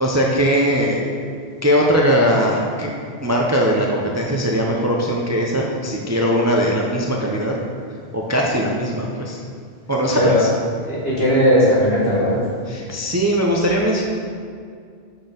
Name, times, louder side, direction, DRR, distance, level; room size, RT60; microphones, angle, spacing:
voice 1, 0.0-1.1 1.6-2.9 3.2-7.6 8.1-9.4 9.9-10.5 12.7-14.0, equal, 25° right, -2 dB, 0.4 m, -20 dB
voice 2, 10.1-10.4 10.8-12.5, equal, 70° left, -7 dB, 2.0 m, -17 dB
5.9 x 4.2 x 5.1 m, 2.2 s
omnidirectional pair, 1.1 m